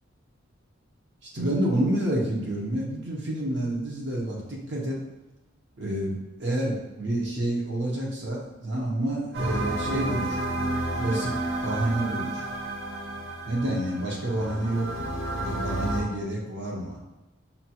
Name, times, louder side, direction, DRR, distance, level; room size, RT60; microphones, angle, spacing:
voice 1, 1.2-5.0 5.8-10.4 11.0-11.4 11.6-12.4 13.5-17.0, right 1 dB, 55° right, -3 dB, 0.8 m, -29 dB
sound 1, 9.3-16.0, right 1 dB, 80° right, 0.8 m, -31 dB
5.5 x 2.3 x 2.9 m, 1.1 s
head